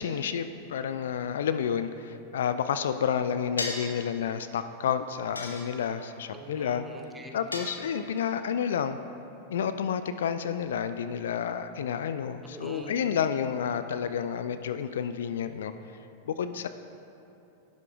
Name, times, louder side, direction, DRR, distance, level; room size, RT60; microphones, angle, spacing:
voice 1, 0.0-6.9 7.3-9.0 9.5-15.7 16.3-16.7, left 8 dB, 60° left, 11 dB, 0.3 m, -30 dB
sound 1, 3.6-4.0 5.3-6.1 7.5-8.2, left 2 dB, 80° left, 1.0 m, -35 dB
voice 2, 6.3-7.4 12.4-13.0, right 1 dB, 10° right, 3 dB, 1.0 m, -43 dB
12.0 x 11.5 x 2.4 m, 3.0 s
figure-of-eight pair, 90°, 0 cm